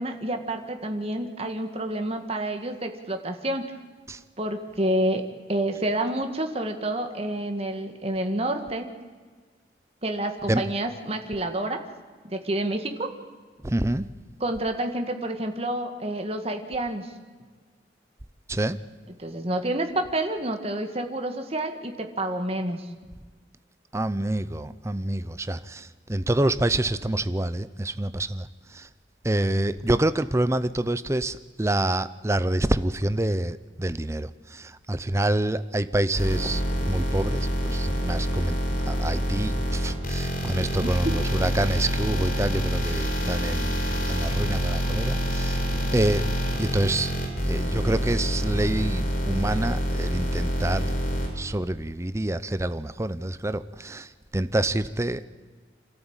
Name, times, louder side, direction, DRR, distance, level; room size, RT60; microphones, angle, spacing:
voice 1, 0.0-3.7 4.4-5.2 5.5-8.9 10.0-11.8 12.2-13.1 14.4-17.1 19.2-22.9 40.8-41.1, right 1 dB, 35° right, 5 dB, 1.8 m, -28 dB
voice 2, 13.6-14.1 18.5-18.8 23.9-28.5 28.7-28.9 29.2-36.6 36.9-38.6 38.9-43.7 44.1-45.6 45.9-46.2 46.6-47.1 47.5-50.9 51.4-55.3, right 1 dB, 15° right, 14 dB, 0.6 m, -27 dB
sound 1, 36.2-51.3, equal, 50° left, 4.4 m, -26 dB
27.5 x 13.5 x 9.0 m, 1.5 s
head